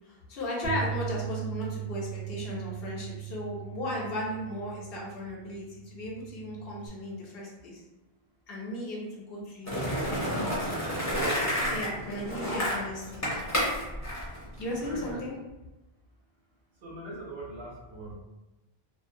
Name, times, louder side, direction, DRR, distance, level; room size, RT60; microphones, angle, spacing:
voice 1, 0.1-7.8 8.5-10.9 11.7-13.2 14.6-15.3, left 1 dB, 70° left, -3 dB, 0.9 m, -36 dB
Bass guitar, 0.6-6.9, right 10 dB, 50° right, 0.6 m, -39 dB
Skateboard, 9.7-15.1, equal, 20° left, 0.6 m, -30 dB
voice 2, 14.7-15.3 16.8-18.1, right 1 dB, 70° right, -5 dB, 1.0 m, -42 dB
2.4 x 2.1 x 2.6 m, 1.0 s
omnidirectional pair, 1.0 m